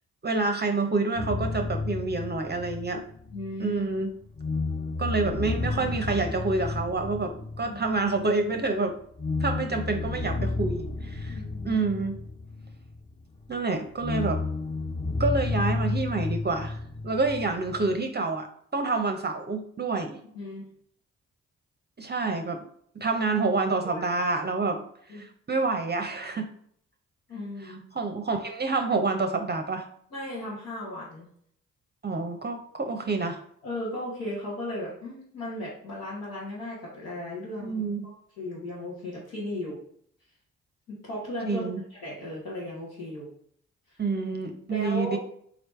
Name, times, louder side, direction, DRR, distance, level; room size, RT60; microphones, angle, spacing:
voice 1, 0.2-3.0 3.6-4.1 5.0-9.0 9.4-11.4 11.6-12.2 13.5-14.4 15.2-16.8 17.0-18.5 18.7-20.2 22.0-22.6 23.0-26.5 27.6-29.8 32.0-33.4 37.6-38.1 41.5-41.8 44.0-45.2, right 3 dB, 30° right, 5 dB, 0.6 m, -28 dB
sound 1, 1.2-4.0 4.4-8.6 9.2-13.3 14.0-18.0, left 3 dB, 20° left, 0.6 m, -31 dB
voice 2, 3.3-3.8 7.7-7.8 11.3-11.8 17.1-17.2 20.3-20.6 23.8-24.0 25.1-25.2 27.3-27.8 30.1-31.3 33.6-39.8 40.9-43.3 43.9-44.0 44.7-45.2, left 1 dB, 90° left, -9 dB, 1.2 m, -36 dB
3.9 x 3.3 x 3.1 m, 0.64 s
hypercardioid pair, 40°, 36 cm